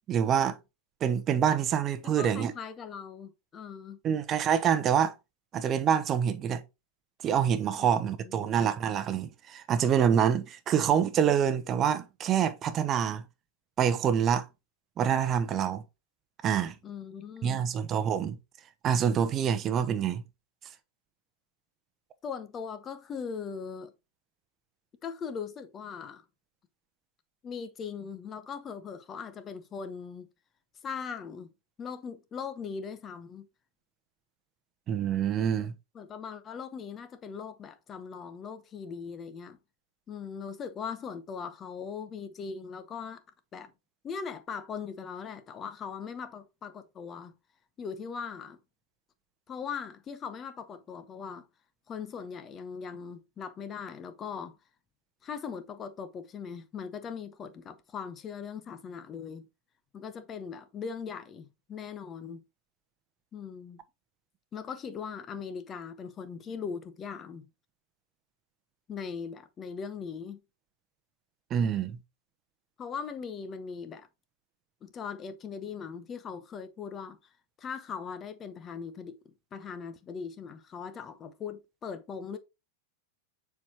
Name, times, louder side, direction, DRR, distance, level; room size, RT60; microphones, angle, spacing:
voice 1, 0.1-0.5 1.0-2.5 4.0-5.1 5.5-6.6 7.2-13.2 13.8-14.5 15.0-15.8 16.4-16.7 17.4-18.4 18.8-20.2 34.9-35.7 71.5-72.0, right 8 dB, 35° right, 0.8 m, -26 dB
voice 2, 2.0-4.0 7.8-8.5 16.8-17.6 22.2-23.9 25.0-26.2 27.4-30.3 30.8-31.5 31.8-33.5 35.9-39.6 40.1-43.2 43.5-43.7 44.0-47.3 47.8-48.6 49.5-51.5 51.9-54.6 55.2-59.4 59.9-62.4 63.3-63.8 64.5-67.5 68.9-70.4 72.8-74.1 74.8-77.2 77.6-79.2 79.5-82.4, left 6 dB, 30° left, 0.8 m, -40 dB
7.1 x 4.7 x 2.9 m
hypercardioid pair, 105°, 0 cm